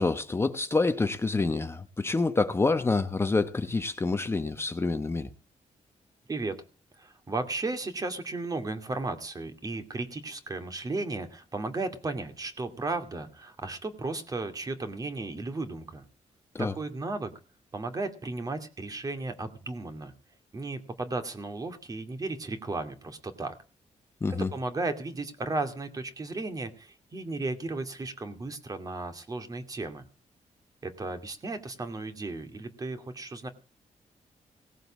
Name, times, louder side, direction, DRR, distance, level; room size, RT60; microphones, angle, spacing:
voice 1, 0.0-5.3 16.5-16.7 24.2-24.5, left 3 dB, 20° left, 1.0 m, -27 dB
voice 2, 7.0-16.0 16.6-17.3 17.7-20.1 20.5-23.5 24.4-30.0 30.8-33.5, right 3 dB, 30° right, 2.4 m, -35 dB
18.0 x 7.7 x 7.4 m
wide cardioid pair, 150°, 13 cm